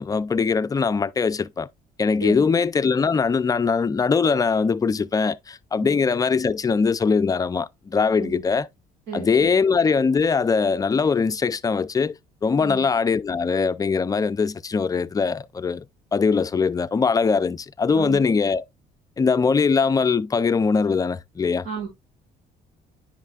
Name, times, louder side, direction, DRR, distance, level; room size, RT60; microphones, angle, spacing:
voice 1, 0.0-1.7 2.0-8.7 9.1-15.8 16.1-18.6 19.2-21.7, left 5 dB, 20° left, 0.4 m, -21 dB
voice 2, 8.1-8.4 9.1-9.6 12.6-12.8 17.9-18.2 21.6-21.9, right 6 dB, 80° right, 4.4 m, -33 dB
9.9 x 5.5 x 2.3 m
cardioid pair, 110°, 17 cm